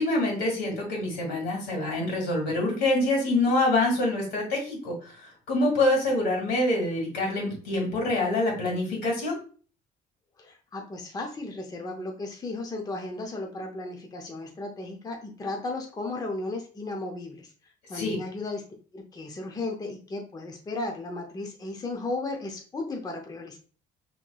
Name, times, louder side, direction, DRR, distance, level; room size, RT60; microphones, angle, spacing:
voice 1, 0.0-5.1 5.5-9.4 17.9-18.2, left 2 dB, 80° left, -1 dB, 1.9 m, -26 dB
voice 2, 10.4-17.5 17.9-18.6 18.9-23.6, left 2 dB, 20° left, 2 dB, 0.6 m, -35 dB
4.2 x 3.0 x 2.2 m, 0.41 s
cardioid pair, 110°, 17 cm